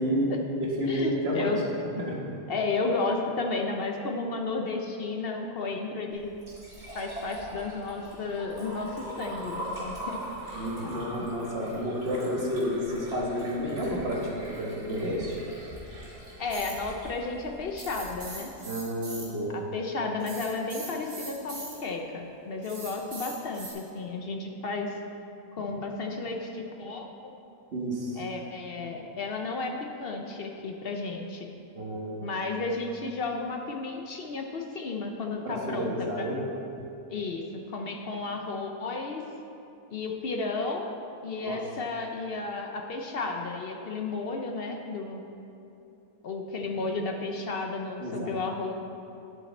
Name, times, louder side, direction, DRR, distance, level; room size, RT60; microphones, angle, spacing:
voice 1, 0.0-1.5 2.0-2.2 10.5-15.4 18.6-19.6 27.7-28.2 31.7-32.3 35.4-36.4 41.4-41.6 48.0-48.3, equal, 40° right, -2 dB, 1.5 m, -30 dB
voice 2, 0.8-1.6 2.0-2.2 2.5-6.3 6.9-11.3 16.4-18.5 19.5-24.9 25.5-27.3 28.2-31.5 32.2-36.3 37.1-39.2 39.9-40.9 41.2-45.2 46.2-48.7, left 3 dB, 55° left, 2 dB, 0.7 m, -33 dB
Liquid, 6.1-18.1, right 1 dB, 65° right, 3.0 m, -41 dB
sound 1, 16.5-16.7 17.8-19.2 20.2-21.7 22.6-23.7, right 2 dB, 85° right, 2.6 m, -40 dB
10.0 x 7.5 x 4.2 m, 2.8 s
omnidirectional pair, 1.7 m